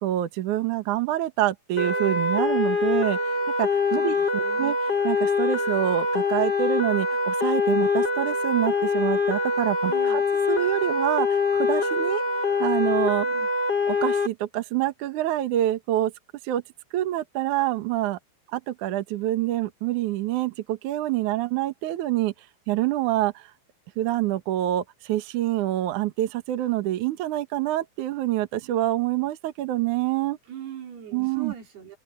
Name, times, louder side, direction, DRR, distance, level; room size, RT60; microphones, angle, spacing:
voice 1, 0.0-3.2 3.6-4.8 5.0-10.2 10.5-12.2 12.6-13.3 13.9-16.1 16.4-16.6 16.9-18.2 18.5-22.3 22.7-23.5 24.0-30.4 31.1-31.5, right 14 dB, 75° right, 1.8 m, -26 dB
sound 1, 1.8-14.3, left 3 dB, 25° left, 2.9 m, -24 dB
voice 2, 3.9-4.8 9.9-10.3 13.3-13.5 30.5-32.0, right 9 dB, 55° right, 6.0 m, -41 dB
omnidirectional pair, 5.5 m